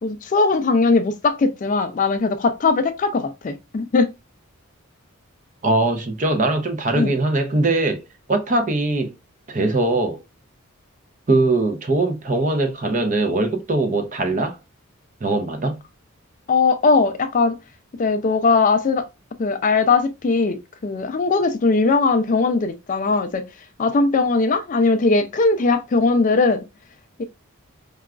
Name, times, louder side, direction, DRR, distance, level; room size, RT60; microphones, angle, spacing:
voice 1, 0.0-4.1 6.9-7.1 16.5-17.6 18.0-19.1 19.4-23.4 23.8-26.6 27.2-27.3, left 3 dB, 35° left, 0.3 m, -19 dB
voice 2, 5.6-8.0 8.3-9.1 9.5-10.2 11.3-14.6 15.2-15.8, right 2 dB, 35° right, 0.5 m, -21 dB
4.7 x 2.3 x 2.3 m
head